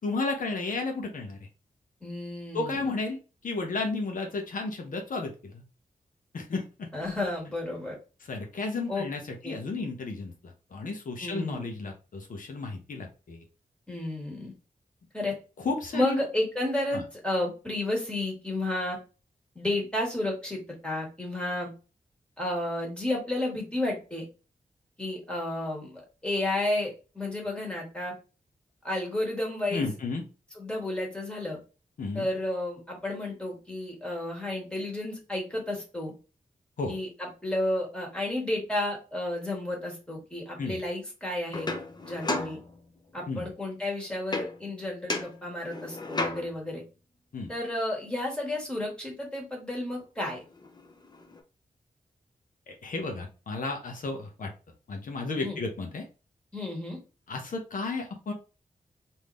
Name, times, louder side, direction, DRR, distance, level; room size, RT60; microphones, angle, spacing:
voice 1, 0.0-1.4 2.5-5.6 6.3-6.9 8.3-13.4 15.6-16.2 16.9-17.0 29.7-30.2 32.0-32.3 36.8-36.9 40.6-40.8 43.3-43.5 47.3-47.5 52.7-54.5 54.9-56.0 57.3-58.3, left 3 dB, 70° left, 3 dB, 0.8 m, -33 dB
voice 2, 2.0-2.9 6.9-8.0 8.9-9.1 9.4-9.6 11.2-11.7 13.9-14.5 15.1-15.3 15.9-19.0 19.5-21.7 22.4-24.2 25.0-28.1 28.8-29.9 30.5-31.6 32.1-36.1 36.9-41.7 42.0-42.6 43.1-46.8 47.5-50.4 55.3-55.6 56.5-57.0, left 1 dB, 5° left, -1 dB, 1.6 m, -32 dB
sound 1, 41.5-43.2 44.3-44.8 45.1-46.7 50.0-50.1 50.4-51.4, left 2 dB, 30° left, 0.7 m, -35 dB
3.6 x 2.7 x 3.1 m, 0.32 s
wide cardioid pair, 125°, 14 cm